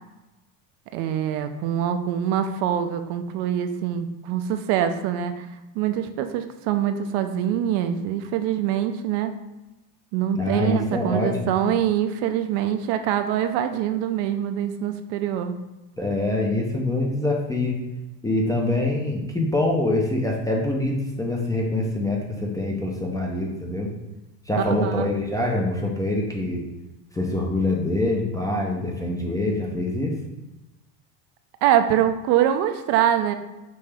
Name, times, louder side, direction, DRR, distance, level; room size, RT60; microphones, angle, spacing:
voice 1, 0.9-5.5 5.8-9.4 10.1-15.5 24.6-25.1 31.6-33.3, right 10 dB, 60° right, 8 dB, 0.5 m, -24 dB
voice 2, 10.3-11.5 16.0-17.8 18.2-23.9 24.5-26.6 27.1-30.1, left 2 dB, 10° left, -2 dB, 0.4 m, -25 dB
5.4 x 2.8 x 3.3 m, 1.0 s
supercardioid pair, 110°, 48 cm